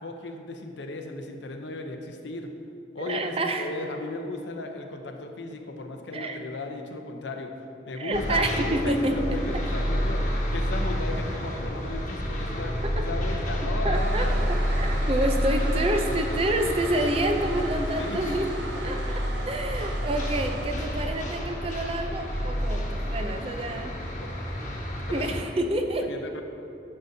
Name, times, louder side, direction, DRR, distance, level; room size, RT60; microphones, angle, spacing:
voice 1, 0.0-2.5 2.9-7.5 7.9-14.5 18.0-18.2 24.2-24.3 25.0-25.2 26.0-26.4, left 2 dB, 75° left, 4 dB, 0.7 m, -36 dB
voice 2, 3.1-3.7 6.1-6.4 8.0-9.2 12.8-13.1 13.8-14.3 14.7-18.6 18.8-23.9 25.1-26.1, right 1 dB, 30° right, 5 dB, 0.5 m, -28 dB
sound 1, 8.1-25.4, equal, 40° left, 1.2 m, -29 dB
Toilet flush, 13.9-21.4, right 2 dB, 70° right, 0.8 m, -39 dB
10.5 x 6.6 x 2.7 m, 2.7 s
head